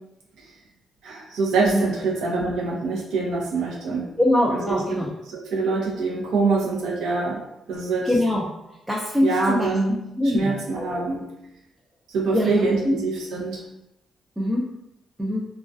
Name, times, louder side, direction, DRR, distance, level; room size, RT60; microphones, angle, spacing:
voice 1, 1.0-4.1 4.5-7.4 7.7-8.1 9.2-10.0 10.2-11.2 12.1-13.6, right 3 dB, 85° right, -1 dB, 0.6 m, -25 dB
voice 2, 4.2-5.1 8.0-10.8 12.3-13.0 14.4-14.7 15.2-15.5, left 1 dB, 5° right, -4 dB, 0.4 m, -24 dB
2.3 x 2.2 x 2.5 m, 0.88 s
cardioid pair, 120°, 0 cm